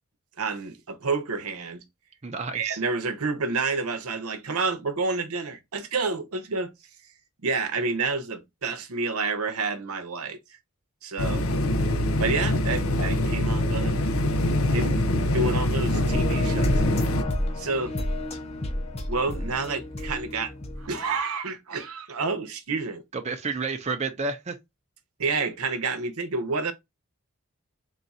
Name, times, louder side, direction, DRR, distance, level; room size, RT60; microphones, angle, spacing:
voice 1, 0.4-1.8 2.5-6.7 7.4-10.4 11.0-11.5 12.2-14.0 14.7-17.0 17.6-17.9 19.1-20.5 20.8-23.0 25.2-26.7, right 4 dB, 90° right, 0.8 m, -29 dB
voice 2, 2.2-2.8 23.1-24.6, right 4 dB, 30° right, 0.6 m, -30 dB
sound 1, 11.2-17.2, left 1 dB, 70° left, 0.6 m, -24 dB
sound 2, 16.1-21.1, left 1 dB, 30° left, 0.7 m, -31 dB
3.8 x 2.4 x 4.1 m
head